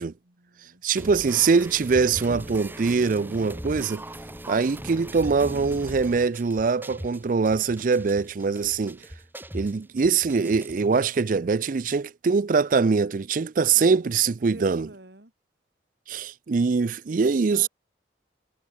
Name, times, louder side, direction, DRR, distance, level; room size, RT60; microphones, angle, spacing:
voice 1, 0.0-1.2 13.7-15.3 17.1-17.7, right 1 dB, 65° right, 3.8 m, -49 dB
voice 2, 0.8-4.0 4.5-9.0 9.5-14.9 16.1-17.7, right 5 dB, 50° right, 0.4 m, -23 dB
sound 1, 1.0-11.0, right 1 dB, 10° right, 3.2 m, -39 dB
head